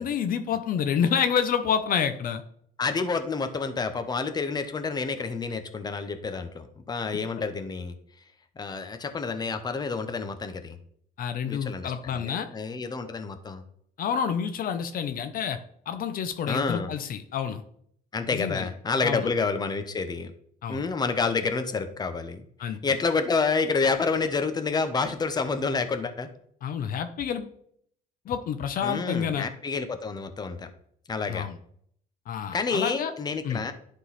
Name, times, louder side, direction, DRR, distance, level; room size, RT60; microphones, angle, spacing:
voice 1, 0.0-2.4 11.2-12.5 14.0-15.6 15.9-17.6 18.3-18.7 19.0-19.3 20.6-20.9 22.6-22.8 26.6-27.5 28.3-29.5 31.3-31.6 32.3-33.1 33.4-33.6, left 7 dB, 55° left, 9 dB, 0.7 m, -28 dB
voice 2, 2.8-7.9 8.6-10.8 11.5-13.6 16.5-16.9 18.1-20.3 20.7-26.3 28.8-30.7 31.1-31.5 32.5-33.7, left 4 dB, 25° left, 8 dB, 0.8 m, -29 dB
11.0 x 3.8 x 4.1 m, 0.66 s
cardioid pair, 110°, 17 cm